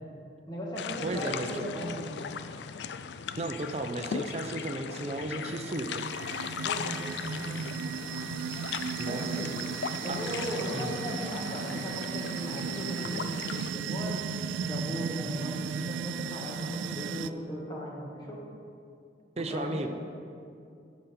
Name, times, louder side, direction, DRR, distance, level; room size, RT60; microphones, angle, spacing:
voice 1, 0.5-2.1 6.6-7.0 7.3-7.7 9.1-9.5 10.0-14.2 14.6-18.4 19.3-19.9, equal, 20° left, -3 dB, 1.5 m, -37 dB
sound 1, 0.8-13.7, left 7 dB, 70° left, 0.3 m, -38 dB
voice 2, 1.0-1.7 3.4-6.0 9.0-9.2 10.1-10.2 10.7-10.9 19.4-19.9, right 2 dB, 35° right, 6 dB, 0.6 m, -34 dB
sound 2, 5.4-17.3, right 6 dB, 90° right, 0.3 m, -36 dB
14.0 x 5.2 x 4.4 m, 2.4 s
head